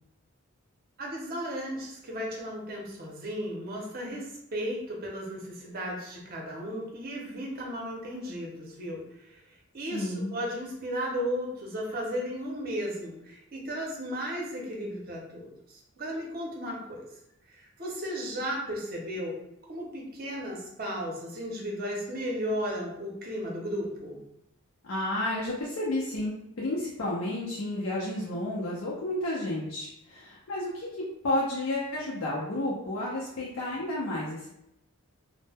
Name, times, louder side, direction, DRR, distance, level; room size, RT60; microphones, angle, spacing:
voice 1, 1.0-9.4 9.7-17.1 17.5-24.2, equal, 45° right, -2 dB, 0.6 m, -35 dB
voice 2, 9.9-10.4 24.8-34.5, left 1 dB, 70° left, -6 dB, 0.5 m, -31 dB
2.1 x 2.0 x 3.3 m, 0.81 s
head